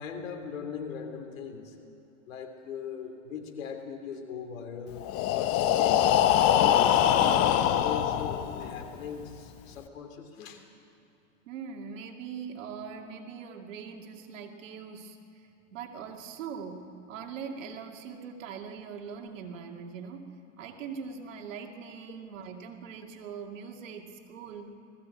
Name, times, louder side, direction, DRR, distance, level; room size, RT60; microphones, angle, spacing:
voice 1, 0.0-1.7 2.3-6.1 6.5-10.6, left 6 dB, 80° left, 4 dB, 3.3 m, -39 dB
Breathing, 5.0-8.9, left 10 dB, 35° left, 1.0 m, -23 dB
voice 2, 11.5-15.2 15.7-20.3 20.6-24.7, right 6 dB, 75° right, 3 dB, 2.5 m, -41 dB
20.0 x 15.5 x 8.8 m, 3.0 s
hypercardioid pair, 125°, 39 cm